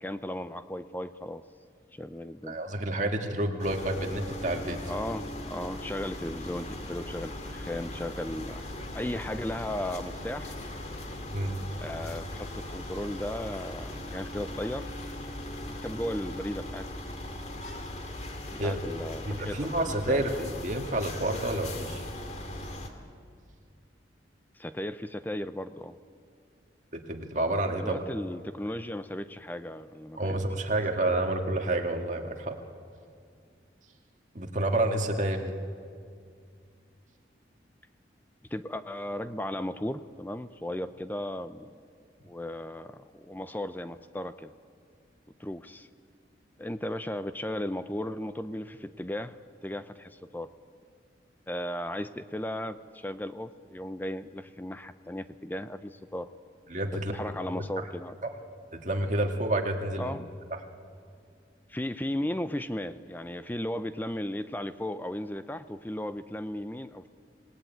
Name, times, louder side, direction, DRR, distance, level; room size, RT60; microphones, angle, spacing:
voice 1, 0.0-1.4 1.9-2.6 4.9-8.6 8.9-10.6 11.8-14.9 15.6-16.9 17.2-17.3 18.5-19.6 19.9-20.2 24.6-26.0 27.8-30.4 38.5-41.7 42.3-44.5 45.4-45.9 46.6-49.4 49.6-50.5 51.5-56.3 56.9-58.2 60.0-60.3 61.7-67.1, left 1 dB, 10° left, 12 dB, 0.5 m, -36 dB
voice 2, 2.5-4.8 11.3-11.6 18.6-18.8 19.3-22.0 26.9-28.0 30.2-32.6 34.3-35.5 56.7-57.1 57.5-57.6 58.7-60.2, right 1 dB, 40° right, 3 dB, 2.0 m, -29 dB
sound 1, 3.6-22.9, left 1 dB, 35° left, 2.1 m, -39 dB
27.0 x 18.5 x 9.2 m, 2.3 s
head